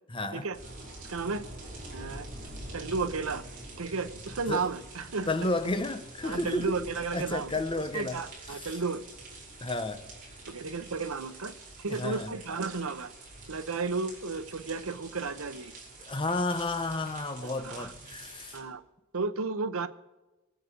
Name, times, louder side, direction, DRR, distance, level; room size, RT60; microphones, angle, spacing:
voice 1, 0.1-0.5 4.5-4.7 5.3-6.9 7.1-8.2 8.5-8.7 9.6-10.1 11.9-12.3 16.0-18.6, left 2 dB, 25° left, 0.9 m, -32 dB
sound 1, 0.5-18.6, right 2 dB, 40° right, 5.3 m, -46 dB
voice 2, 1.0-1.5 1.9-2.3 2.7-3.4 3.8-5.3 6.2-7.5 7.9-9.0 10.5-13.1 13.5-15.7 17.4-17.9 18.5-18.8 19.1-19.9, right 4 dB, 75° right, 0.9 m, -33 dB
23.0 x 8.0 x 5.2 m
head